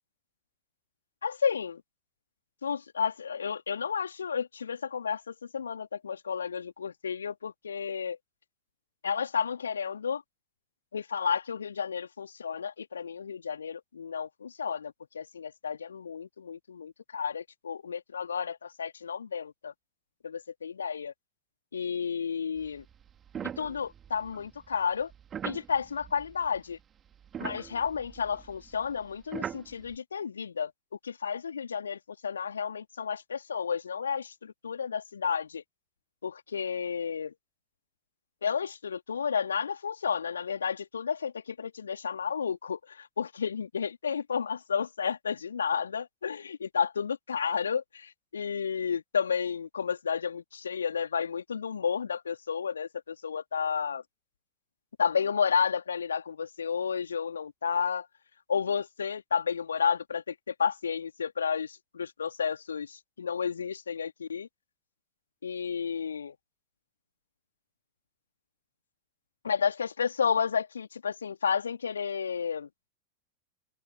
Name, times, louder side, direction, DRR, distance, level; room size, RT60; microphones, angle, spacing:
voice 1, 1.2-1.8 2.6-8.2 9.0-10.2 10.9-19.7 20.2-21.1 21.7-22.8 23.6-25.1 25.4-26.8 27.4-30.7 31.0-35.6 36.2-37.3 38.4-54.0 55.0-58.1 58.5-64.5 65.4-66.3 69.4-72.7, left 6 dB, 70° left, 2.6 m, -32 dB
sound 1, 22.6-26.8 27.1-30.0, right 8 dB, 25° right, 4.0 m, -42 dB
figure-of-eight pair, 90°, 0 cm